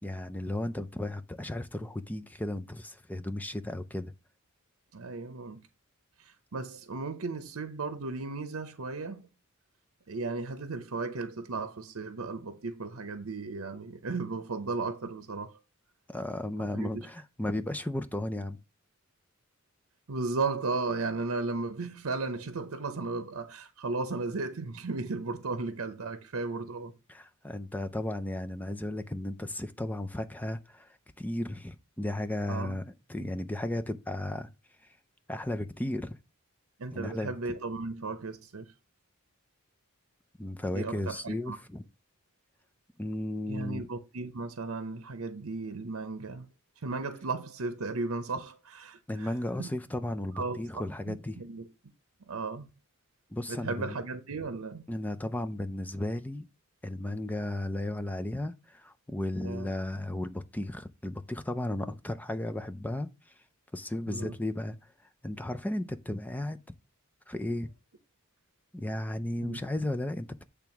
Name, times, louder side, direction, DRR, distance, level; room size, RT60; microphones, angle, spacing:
voice 1, 0.0-4.1 16.1-18.6 27.1-34.5 35.3-36.2 36.9-37.3 40.4-41.8 43.0-43.9 49.1-51.4 53.3-54.0 54.9-56.5 56.8-63.3 63.7-64.8 65.2-66.6 67.3-67.7 68.7-70.4, left 1 dB, 10° left, 0.4 m, -34 dB
voice 2, 4.9-5.6 6.2-9.3 10.1-15.6 16.7-17.0 20.1-26.9 32.5-32.8 33.2-33.3 36.8-38.7 40.7-41.6 43.5-46.5 46.8-49.3 49.6-49.7 50.3-51.7 52.3-52.7 53.5-54.8 59.4-59.7 64.1-64.3 69.4-69.6, right 3 dB, 70° right, 0.8 m, -35 dB
8.8 x 3.5 x 5.9 m
head